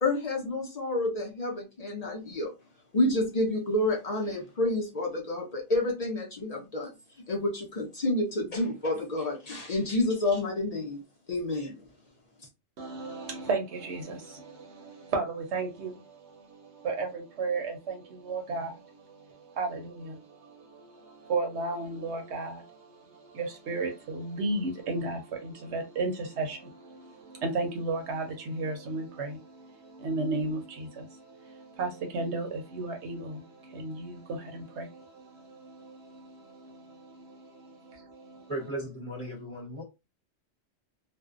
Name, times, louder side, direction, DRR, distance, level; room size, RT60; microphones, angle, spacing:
voice 1, 0.0-2.5 2.9-6.9 7.3-11.0 11.3-11.7, left 2 dB, 50° left, 0.4 m, -29 dB
voice 2, 12.8-38.5, right 3 dB, 65° right, 0.9 m, -35 dB
voice 3, 38.5-39.8, right 1 dB, 30° right, 0.7 m, -36 dB
2.5 x 2.1 x 2.4 m
omnidirectional pair, 1.3 m